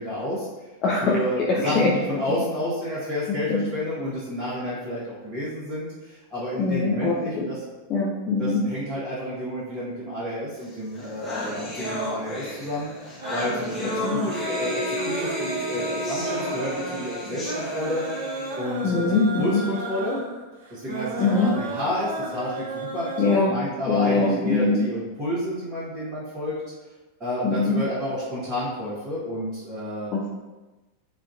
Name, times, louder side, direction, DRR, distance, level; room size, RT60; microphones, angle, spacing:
voice 1, 0.0-0.7 1.0-7.6 8.3-18.0 18.6-20.2 20.7-26.5 27.2-30.1, left 1 dB, 25° right, -10 dB, 1.0 m, -30 dB
voice 2, 0.8-1.1 1.5-1.9 3.5-3.6 6.6-7.5 7.9-8.6 14.0-14.2 18.8-19.6 21.2-21.5 23.2-23.5 23.9-24.8 27.4-27.8 30.1-30.3, left 3 dB, 35° left, -5 dB, 0.5 m, -22 dB
sound 1, 10.7-10.8 10.9-18.5, left 1 dB, 15° left, 0.9 m, -32 dB
Woman Vocal Gladiator Type, 13.2-23.4, right 2 dB, 60° right, 0.5 m, -33 dB
4.3 x 2.5 x 2.3 m, 1.2 s
figure-of-eight pair, 90°, 0 cm